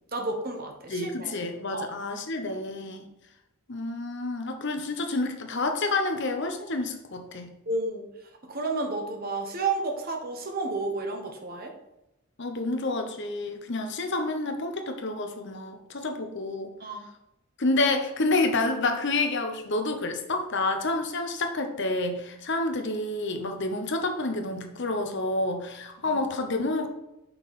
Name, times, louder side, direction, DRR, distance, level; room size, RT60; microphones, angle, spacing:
voice 1, 0.1-1.3 1.7-1.9 7.7-8.0 8.5-11.7 16.8-17.1 26.0-26.2, right 3 dB, 40° right, 3 dB, 1.0 m, -31 dB
voice 2, 0.9-3.1 3.7-7.5 12.4-16.7 17.6-26.9, left 2 dB, 50° left, 5 dB, 0.8 m, -29 dB
5.9 x 5.6 x 4.1 m, 0.89 s
head